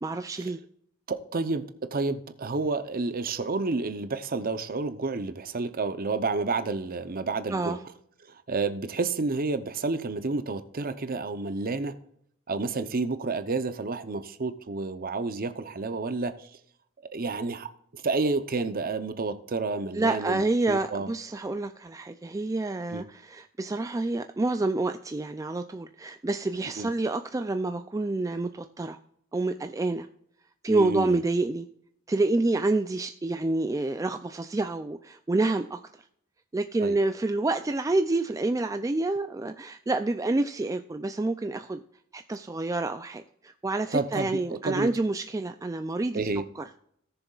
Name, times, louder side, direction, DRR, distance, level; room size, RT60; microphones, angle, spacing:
voice 1, 0.0-0.6 7.5-7.8 19.9-29.0 29.3-30.1 30.6-31.7 32.1-35.8 36.5-41.8 42.1-46.2 46.6-46.7, right 2 dB, 15° right, 0.3 m, -28 dB
voice 2, 1.1-1.6 1.9-7.8 8.3-11.9 12.5-16.5 17.1-21.1 22.9-23.0 26.8-26.9 30.7-31.2 36.8-37.0 43.9-44.9 46.1-46.4, right 3 dB, 40° right, 0.7 m, -30 dB
17.5 x 6.9 x 2.4 m
head